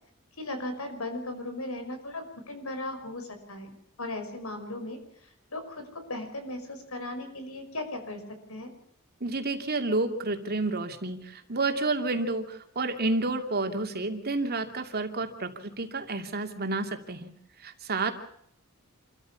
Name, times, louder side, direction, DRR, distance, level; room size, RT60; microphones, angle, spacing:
voice 1, 0.4-5.0 5.5-8.2 8.5-8.7, left 2 dB, 75° left, 7 dB, 5.7 m, -37 dB
voice 2, 9.2-17.3 17.6-18.1, right 3 dB, 45° right, 6 dB, 2.7 m, -30 dB
28.5 x 14.0 x 7.1 m, 0.71 s
head